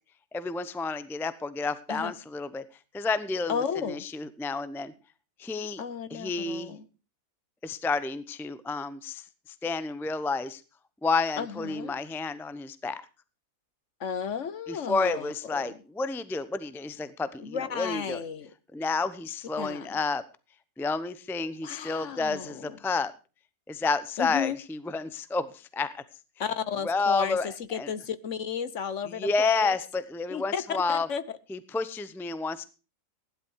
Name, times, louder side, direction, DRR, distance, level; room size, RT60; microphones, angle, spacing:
voice 1, 0.3-2.6 2.9-4.9 5.4-5.8 6.1-6.7 7.6-9.2 9.6-10.6 11.0-13.0 14.7-18.2 18.7-20.2 20.8-23.1 23.7-26.0 26.8-27.9 29.1-31.1 31.5-32.6, left 3 dB, ahead, 0.6 m, -30 dB
voice 2, 3.5-4.0 5.8-6.8 11.4-11.9 14.0-15.8 17.4-18.5 19.6-20.0 21.6-22.8 24.2-24.6 26.4-29.8 30.3-31.2, left 7 dB, 55° left, 1.2 m, -33 dB
16.0 x 11.5 x 4.7 m
omnidirectional pair, 1.6 m